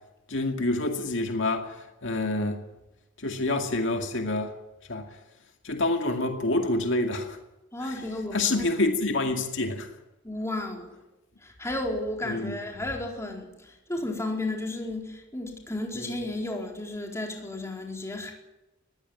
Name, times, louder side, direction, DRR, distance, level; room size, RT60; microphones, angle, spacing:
voice 1, 0.3-2.6 3.2-4.5 4.9-5.1 5.6-7.4 7.8-7.9 8.3-9.9 12.3-12.6, left 2 dB, 65° left, 4 dB, 2.2 m, -27 dB
voice 2, 7.7-8.7 10.2-11.0 11.4-18.3, left 2 dB, 15° left, 1 dB, 4.4 m, -33 dB
21.5 x 15.5 x 9.4 m, 0.97 s
head